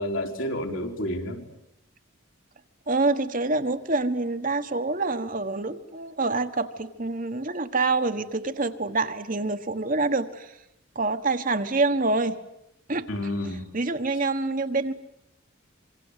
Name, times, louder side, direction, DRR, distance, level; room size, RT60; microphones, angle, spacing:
voice 1, 0.0-1.4 13.1-13.6, left 1 dB, 70° left, 2 dB, 4.2 m, -30 dB
voice 2, 2.9-10.6 10.9-12.4 12.9-13.1 13.4-14.9, right 3 dB, 40° right, 8 dB, 1.4 m, -26 dB
26.5 x 24.5 x 8.3 m, 0.84 s
head